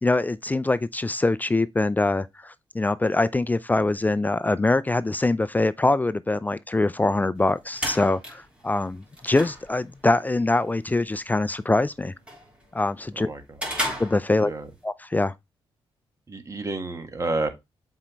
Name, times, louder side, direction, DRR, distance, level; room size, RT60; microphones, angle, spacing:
voice 1, 0.0-12.1 12.7-13.3 14.0-14.5 14.8-15.3, left 2 dB, 15° left, 0.4 m, -23 dB
sound 1, 7.4-14.8, equal, 10° right, 3.5 m, -37 dB
voice 2, 16.3-17.5, right 2 dB, 30° right, 1.4 m, -30 dB
7.4 x 4.5 x 3.1 m
cardioid pair, 80°, 10 cm